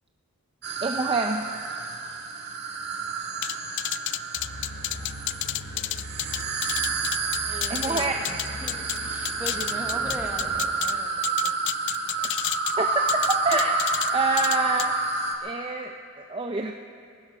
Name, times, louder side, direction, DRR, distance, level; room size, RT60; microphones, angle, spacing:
sound 1, 0.6-15.4, right 4 dB, 50° right, 1.6 m, -29 dB
voice 1, 0.8-1.4 7.7-8.1 12.2-12.3 12.8-13.8 14.1-14.9 15.4-16.7, right 3 dB, 25° right, 4 dB, 0.5 m, -27 dB
sound 2, 3.4-9.0 9.3-10.9 11.2-12.8 13.1-14.1 14.4-14.9, left 15 dB, 55° left, 0.3 m, -30 dB
sound 3, 4.3-10.6, left 1 dB, 80° left, 2.2 m, -41 dB
voice 2, 7.5-8.8 9.0-11.5, right 1 dB, 5° right, 3 dB, 1.1 m, -40 dB
19.5 x 12.5 x 5.4 m, 2.3 s
head